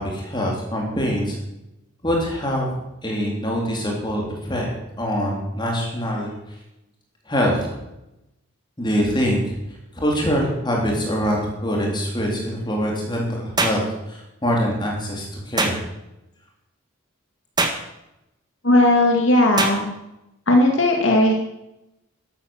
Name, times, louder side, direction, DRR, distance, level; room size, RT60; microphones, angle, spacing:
voice 1, 0.0-1.4 2.0-2.7 3.0-4.7 5.0-6.6 7.3-7.7 8.8-9.5 10.0-15.8, equal, 20° left, -1 dB, 3.8 m, -24 dB
sound 1, 13.6-13.8 15.6-15.8 17.6-17.8 19.6-19.8, right 3 dB, 20° right, 1.7 m, -22 dB
voice 2, 18.6-19.9 20.5-21.3, left 1 dB, 55° left, 2 dB, 2.3 m, -16 dB
13.0 x 12.5 x 7.3 m, 0.90 s
head